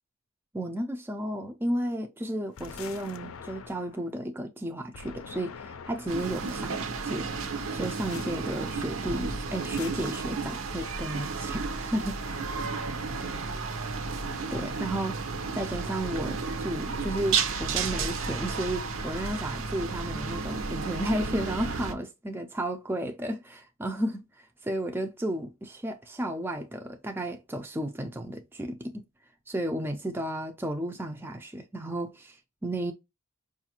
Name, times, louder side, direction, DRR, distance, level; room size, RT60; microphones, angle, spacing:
voice 1, 0.5-7.3 7.7-12.2 14.5-15.2 15.5-29.0 29.5-32.9, right 1 dB, 10° right, 0.4 m, -33 dB
sound 1, 2.6-4.0 4.9-6.4 7.8-8.4 9.6-10.2, left 6 dB, 80° left, 0.5 m, -44 dB
sound 2, 6.1-21.9, right 4 dB, 75° right, 0.7 m, -32 dB
5.0 x 2.4 x 2.8 m
head